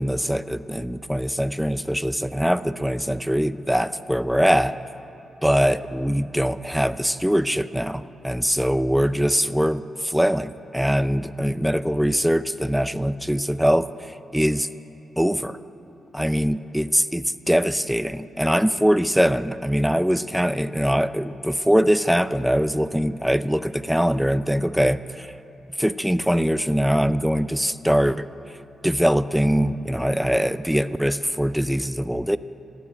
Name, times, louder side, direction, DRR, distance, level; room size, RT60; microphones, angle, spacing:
voice 1, 0.0-4.8 5.4-13.9 14.3-14.7 15.2-15.6 16.1-25.3 25.8-28.3 28.8-32.4, equal, ahead, 13 dB, 0.5 m, -22 dB
14.5 x 9.2 x 8.5 m, 2.9 s
supercardioid pair, 45°, 0 cm